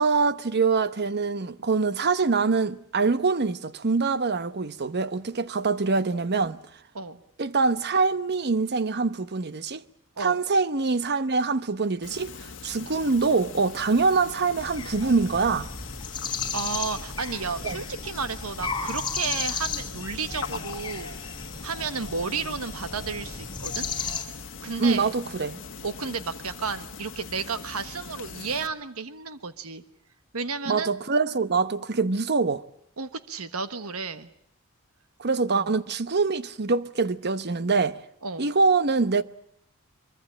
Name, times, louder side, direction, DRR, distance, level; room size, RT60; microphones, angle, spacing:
voice 1, 0.0-6.6 7.4-9.8 10.2-15.7 17.6-17.8 24.8-25.6 30.7-32.6 35.2-38.0 38.4-39.2, right 4 dB, 50° right, 1.0 m, -24 dB
sound 1, 12.0-28.7, left 5 dB, 60° left, 1.6 m, -41 dB
sound 2, 14.6-24.2, left 5 dB, 20° left, 3.1 m, -34 dB
voice 2, 16.5-21.1 21.6-23.9 24.6-25.1 25.8-29.8 30.3-30.9 33.0-34.3 35.5-35.7 38.2-38.5, right 5 dB, 70° right, 1.4 m, -32 dB
24.0 x 23.0 x 8.7 m
head